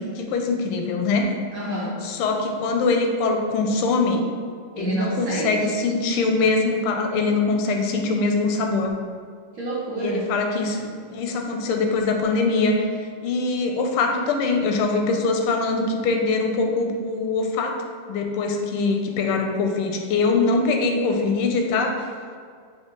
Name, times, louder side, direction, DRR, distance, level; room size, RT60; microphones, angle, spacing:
voice 1, 0.0-1.3 2.0-4.2 4.8-8.9 10.0-12.9 13.2-17.8 18.1-22.1, left 3 dB, 85° left, 3 dB, 1.5 m, -23 dB
voice 2, 1.5-1.9 4.8-5.5 9.5-10.2, right 2 dB, 60° right, -8 dB, 0.9 m, -27 dB
4.5 x 2.9 x 3.7 m, 2.1 s
omnidirectional pair, 2.4 m